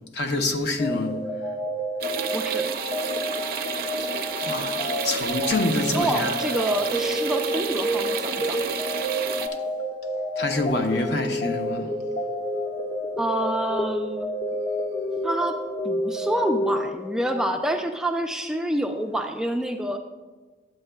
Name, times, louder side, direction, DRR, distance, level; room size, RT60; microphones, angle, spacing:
voice 1, 0.1-1.1 4.4-6.6 10.4-11.9, left 2 dB, 60° left, 0.7 m, -26 dB
sound 1, 0.8-17.4, equal, 35° left, 0.9 m, -29 dB
sound 2, 2.0-9.5, right 6 dB, 55° right, 0.5 m, -31 dB
voice 2, 2.3-2.8 5.9-8.6 13.2-14.3 15.2-15.6 15.8-20.0, right 1 dB, 5° right, 0.3 m, -27 dB
11.0 x 7.8 x 2.2 m
head